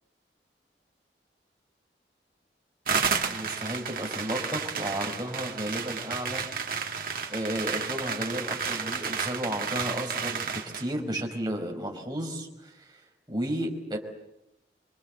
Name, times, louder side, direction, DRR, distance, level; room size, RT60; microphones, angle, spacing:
sound 1, 2.9-10.9, right 5 dB, 50° right, 2.1 m, -32 dB
voice 1, 3.3-6.4 7.3-13.0 13.3-14.0, right 1 dB, 25° right, 1 dB, 5.0 m, -33 dB
27.5 x 24.0 x 7.7 m, 0.87 s
head